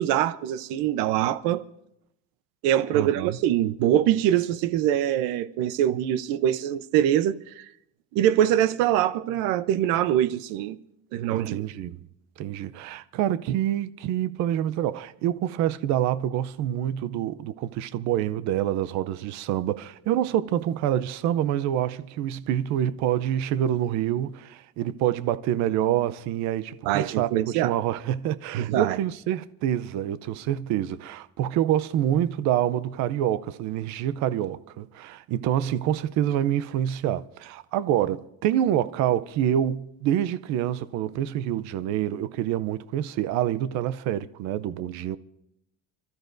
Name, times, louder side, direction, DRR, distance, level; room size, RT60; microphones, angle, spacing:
voice 1, 0.0-1.6 2.6-7.6 8.1-10.8 11.1-11.7 26.8-27.7 28.5-29.0, right 11 dB, 80° right, 0.8 m, -23 dB
voice 2, 2.9-3.4 11.3-12.0 12.4-45.2, right 11 dB, 55° right, 0.6 m, -27 dB
29.5 x 13.5 x 2.6 m
cardioid pair, 165°, 34 cm